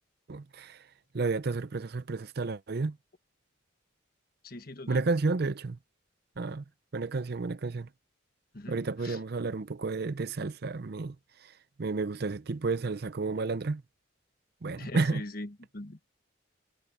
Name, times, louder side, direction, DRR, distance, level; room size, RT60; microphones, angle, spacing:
voice 1, 0.3-0.8 1.1-3.0 4.9-5.8 6.4-6.6 6.9-7.9 8.7-11.1 11.8-13.8 14.6-15.2, right 3 dB, 50° right, 0.5 m, -31 dB
voice 2, 4.4-5.1 8.5-9.2 14.7-16.1, left 2 dB, 50° left, 1.6 m, -42 dB
head